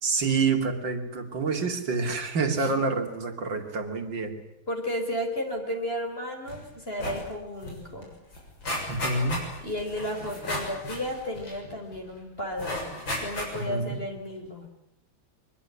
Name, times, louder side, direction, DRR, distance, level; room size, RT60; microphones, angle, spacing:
voice 1, 0.0-4.4 8.9-9.4 13.5-14.0, right 4 dB, 65° right, 5 dB, 3.4 m, -27 dB
voice 2, 4.7-8.1 9.6-12.9 13.2-14.7, left 1 dB, 25° left, 2 dB, 4.7 m, -33 dB
sound 1, 6.5-6.6 6.9-7.3 7.6-7.7 8.0-12.0 12.6-13.8 14.3-14.4, left 1 dB, 70° left, 7.7 m, -34 dB
24.0 x 22.0 x 9.9 m, 0.82 s
omnidirectional pair, 2.2 m